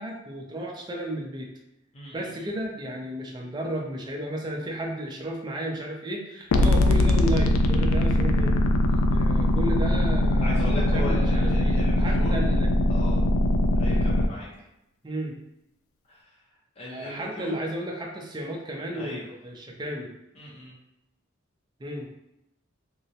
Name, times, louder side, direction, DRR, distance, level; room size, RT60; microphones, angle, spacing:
voice 1, 0.0-1.5 2.1-8.6 9.1-12.9 15.0-15.4 16.9-19.2 19.4-20.1 21.8-22.1, right 1 dB, 20° right, 0 dB, 0.4 m, -33 dB
voice 2, 1.9-2.5 10.4-12.3 12.9-13.2 13.8-14.5 16.1-16.4 16.8-17.6 18.9-19.3 20.3-20.8, left 1 dB, 30° left, -6 dB, 0.6 m, -38 dB
sound 1, 6.5-14.3, left 1 dB, 80° left, 0.3 m, -21 dB
3.7 x 2.1 x 2.7 m, 0.87 s
head